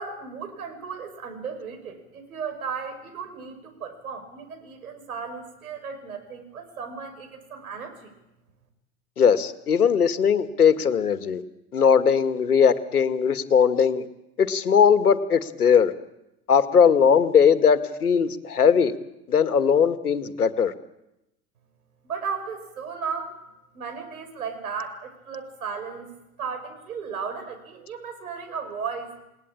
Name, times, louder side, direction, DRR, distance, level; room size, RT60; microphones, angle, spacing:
voice 1, 0.0-8.1 22.0-23.3 23.7-26.1 26.4-29.1, right 6 dB, 65° right, 6 dB, 5.9 m, -35 dB
voice 2, 9.2-11.4 11.7-14.1 14.4-15.9 16.5-18.9 19.3-20.7, left 7 dB, 75° left, 12 dB, 1.8 m, -19 dB
29.5 x 19.0 x 8.8 m, 0.90 s
figure-of-eight pair, 90°, 46 cm